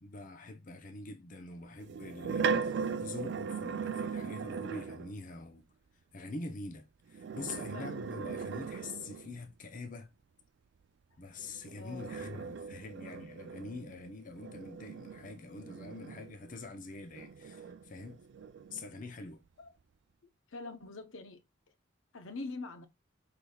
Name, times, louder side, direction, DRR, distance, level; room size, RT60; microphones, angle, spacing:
voice 1, 0.0-5.6 6.1-10.1 11.2-18.2 18.7-19.4, left 3 dB, 40° left, 0.7 m, -45 dB
sound 1, 1.8-5.1 7.1-9.4 11.4-16.6 17.1-18.9, right 5 dB, 60° right, 0.3 m, -38 dB
voice 2, 7.7-8.0 11.8-12.2 19.6-19.7 20.5-21.4 22.1-22.9, left 3 dB, 85° left, 0.9 m, -44 dB
5.8 x 3.4 x 2.3 m
head